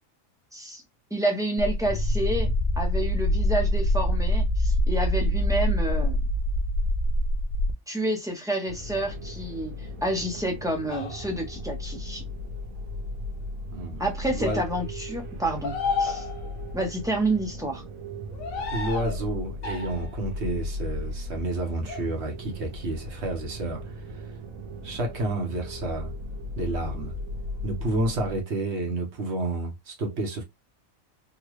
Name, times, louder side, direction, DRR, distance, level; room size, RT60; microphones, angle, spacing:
voice 1, 0.5-0.8 1.1-6.2 7.9-12.2 14.0-16.2 16.7-17.8, right 1 dB, 5° right, 0.7 m, -29 dB
sound 1, 1.6-7.7, equal, 50° left, 0.5 m, -24 dB
sound 2, 8.7-28.4, left 1 dB, 80° right, 1.3 m, -37 dB
sound 3, 10.9-11.4 14.3-14.7 15.6-16.7 18.3-19.2 19.6-20.2 21.8-22.1, left 5 dB, 75° left, 1.2 m, -32 dB
voice 2, 13.7-14.6 18.7-24.4 24.8-26.1 26.6-27.1 27.6-30.4, right 2 dB, 55° right, 1.3 m, -30 dB
3.9 x 2.3 x 3.1 m
omnidirectional pair, 1.5 m